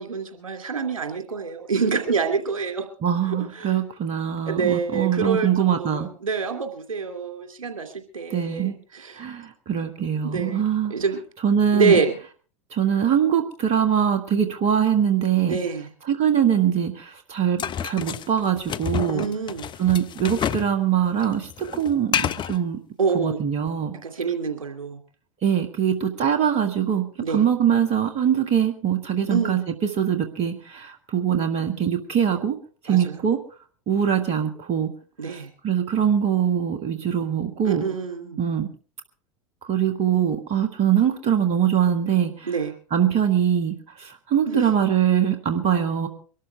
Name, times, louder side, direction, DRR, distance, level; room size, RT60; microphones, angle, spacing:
voice 1, 0.0-2.9 3.3-3.8 4.5-9.3 10.2-10.6 10.9-11.2 11.7-12.2 15.4-15.9 19.1-19.7 23.0-23.4 24.0-25.0 27.2-27.4 29.3-29.6 32.9-33.2 35.2-35.5 37.6-38.4 42.4-42.7 44.4-44.7, right 5 dB, 80° right, 5 dB, 2.7 m, -26 dB
voice 2, 3.0-6.1 8.3-8.8 9.2-10.9 11.4-12.0 12.7-15.6 16.1-19.3 19.8-22.8 23.1-24.0 25.4-29.6 30.0-32.6 32.8-33.4 33.9-34.9 35.3-37.9 38.4-38.7 39.6-42.5 42.9-46.1, right 9 dB, 40° right, 6 dB, 2.0 m, -23 dB
sound 1, 17.6-20.7 21.0-22.6, left 9 dB, 30° left, 0.7 m, -29 dB
23.5 x 13.0 x 3.4 m, 0.39 s
figure-of-eight pair, 85°, 17 cm